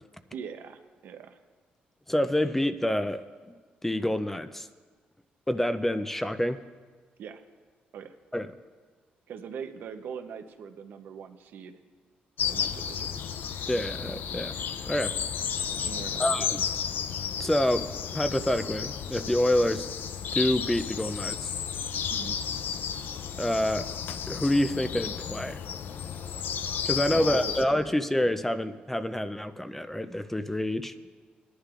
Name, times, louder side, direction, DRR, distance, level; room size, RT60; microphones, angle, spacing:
voice 1, 0.3-1.4 7.2-7.4 7.9-8.1 9.3-11.8 12.5-13.2 15.8-16.6 22.1-22.4 26.9-27.6, right 7 dB, 75° right, 7 dB, 0.8 m, -41 dB
voice 2, 2.1-3.2 3.5-3.6 3.8-4.7 5.5-6.6 8.3-8.5 13.7-14.6 14.8-15.1 16.2-16.6 17.4-19.9 20.3-21.5 23.4-23.9 24.3-25.6 26.8-30.9, left 1 dB, 10° left, 10 dB, 0.5 m, -27 dB
sound 1, 12.4-27.6, left 8 dB, 70° left, 0.5 m, -33 dB
19.5 x 11.0 x 2.5 m, 1.4 s
cardioid pair, 90°, 3 cm